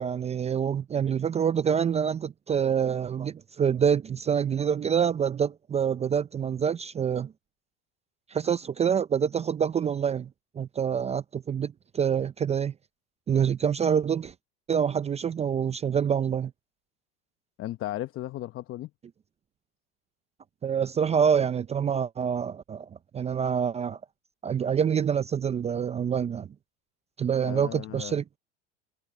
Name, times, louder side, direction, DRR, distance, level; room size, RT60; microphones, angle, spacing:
voice 1, 0.0-7.3 8.3-10.3 10.6-12.7 13.3-14.3 14.7-16.5 20.6-22.9 23.1-24.0 24.4-26.5 27.2-28.4, right 7 dB, 20° right, 0.5 m, -26 dB
voice 2, 17.6-18.9 27.4-28.2, left 14 dB, 45° left, 1.0 m, -35 dB
supercardioid pair, 110°, 31 cm